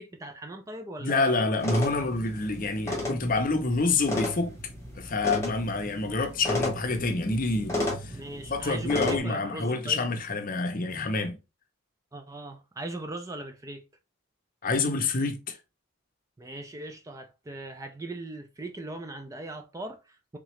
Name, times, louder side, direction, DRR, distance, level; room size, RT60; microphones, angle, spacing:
voice 1, 0.0-1.4 1.8-1.9 6.1-6.3 8.1-10.0 12.1-13.8 16.4-20.4, right 2 dB, 15° right, 0.3 m, -39 dB
voice 2, 1.0-4.5 4.9-8.2 8.5-11.4 14.6-15.6, left 3 dB, 40° left, 0.6 m, -27 dB
sound 1, 1.6-9.2, left 2 dB, 15° left, 1.0 m, -33 dB
3.6 x 2.9 x 3.1 m
head